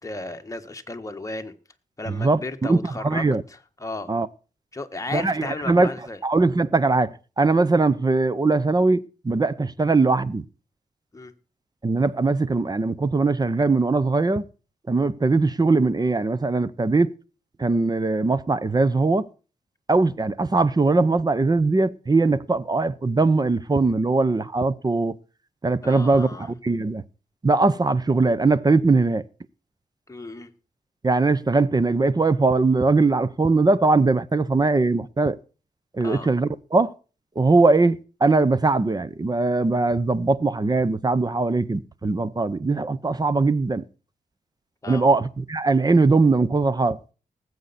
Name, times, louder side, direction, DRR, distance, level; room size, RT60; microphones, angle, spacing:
voice 1, 0.0-1.6 2.0-4.1 4.7-6.2 11.1-11.3 25.8-26.5 30.1-30.5 36.0-36.3 44.8-45.1, left 2 dB, 20° left, 1.5 m, -34 dB
voice 2, 2.1-3.4 4.1-4.3 5.1-5.9 6.2-10.4 11.8-14.4 14.9-17.1 17.6-19.3 19.9-25.2 25.6-27.0 27.4-29.2 31.0-35.4 35.9-36.9 37.4-43.8 44.9-47.0, right 3 dB, 30° right, 0.8 m, -21 dB
19.0 x 8.1 x 4.2 m
wide cardioid pair, 90°, 14 cm